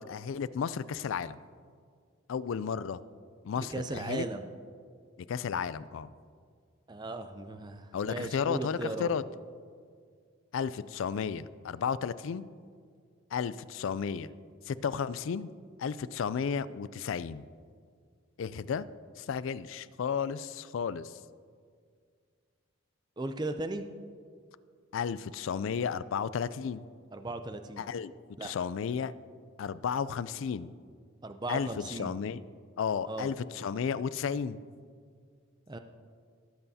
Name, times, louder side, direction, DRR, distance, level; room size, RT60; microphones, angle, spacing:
voice 1, 0.0-1.4 2.3-3.0 3.4-4.2 5.3-6.1 7.9-9.2 10.5-12.5 13.3-14.3 14.7-15.5 15.8-17.4 18.4-18.9 19.2-21.2 24.9-26.8 27.8-28.1 28.4-29.1 29.6-30.7 31.5-32.4 32.8-34.6, left 6 dB, 65° left, 16 dB, 0.3 m, -33 dB
voice 2, 3.6-4.5 6.9-9.1 23.2-23.9 27.1-27.9 28.4-28.5 31.2-32.2 33.1-33.3 35.7-35.8, right 2 dB, 20° right, 8 dB, 0.4 m, -37 dB
19.5 x 7.8 x 2.8 m, 2.1 s
head